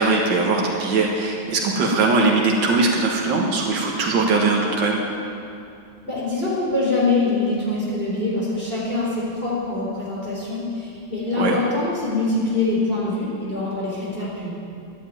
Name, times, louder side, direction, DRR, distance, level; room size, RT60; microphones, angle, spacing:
voice 1, 0.0-5.0 11.4-11.6, right 3 dB, 70° right, -1 dB, 2.3 m, -20 dB
voice 2, 6.1-14.5, left 3 dB, 25° left, -7 dB, 4.6 m, -24 dB
13.5 x 11.0 x 9.3 m, 2.6 s
omnidirectional pair, 2.1 m